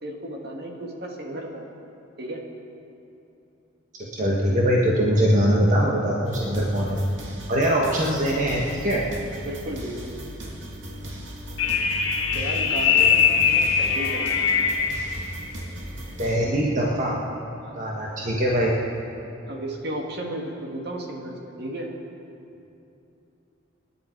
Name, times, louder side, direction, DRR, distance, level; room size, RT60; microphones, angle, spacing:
voice 1, 0.0-1.7 2.2-2.4 7.6-7.8 9.4-10.3 12.3-14.4 17.6-17.8 19.5-21.9, right 1 dB, 55° right, 0 dB, 2.1 m, -34 dB
voice 2, 4.2-7.0 7.5-9.0 16.2-17.2 17.7-18.7, equal, 40° right, -4 dB, 1.6 m, -22 dB
sound 1, 6.3-16.4, equal, 75° right, 2.5 m, -37 dB
sound 2, 11.6-15.1, left 6 dB, 80° left, 1.7 m, -21 dB
27.0 x 10.5 x 4.7 m, 2.8 s
head